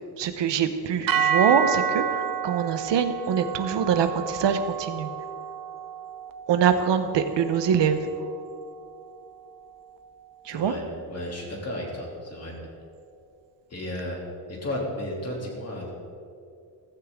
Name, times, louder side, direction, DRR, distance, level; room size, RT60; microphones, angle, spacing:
voice 1, 0.2-5.1 6.5-8.0 10.4-10.7, right 7 dB, 80° right, 9 dB, 1.1 m, -24 dB
sound 1, 1.1-9.3, right 8 dB, 55° right, 0.7 m, -30 dB
voice 2, 10.5-10.8 11.1-12.5 13.7-14.2 14.5-15.9, left 1 dB, 35° left, -2 dB, 3.0 m, -33 dB
15.5 x 15.0 x 3.7 m, 2.4 s
wide cardioid pair, 175°, 42 cm